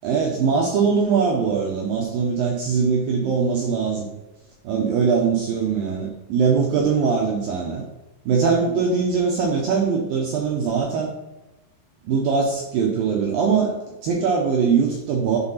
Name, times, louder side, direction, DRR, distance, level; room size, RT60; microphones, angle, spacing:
voice 1, 0.0-4.1 4.6-7.8 8.3-11.1 12.0-13.8 14.0-15.4, right 5 dB, 85° right, 0 dB, 2.0 m, -21 dB
10.0 x 4.4 x 5.7 m, 1.0 s
omnidirectional pair, 5.5 m